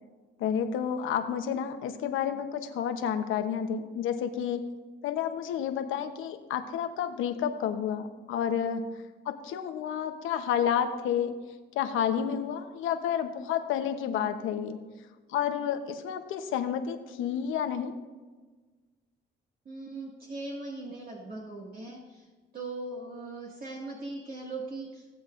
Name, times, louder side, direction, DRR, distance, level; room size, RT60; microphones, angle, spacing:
voice 1, 0.4-4.7 5.0-8.8 9.2-11.4 11.7-14.8 15.3-17.9, left 8 dB, 85° left, 7 dB, 1.0 m, -30 dB
voice 2, 19.7-22.3 22.5-25.0, right 2 dB, 45° right, -4 dB, 2.1 m, -39 dB
16.5 x 8.1 x 2.6 m, 1.3 s
cardioid pair, 90°, 20 cm